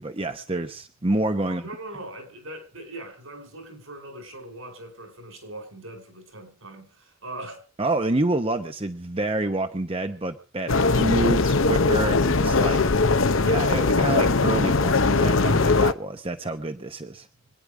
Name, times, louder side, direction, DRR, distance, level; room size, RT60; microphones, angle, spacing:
voice 1, 0.0-1.7 7.8-12.8 13.4-17.3, right 2 dB, 25° right, 0.9 m, -28 dB
voice 2, 1.4-7.7, right 1 dB, 70° right, 4.8 m, -40 dB
sound 1, 10.7-15.9, left 3 dB, 65° left, 0.9 m, -20 dB
25.5 x 9.8 x 4.9 m
head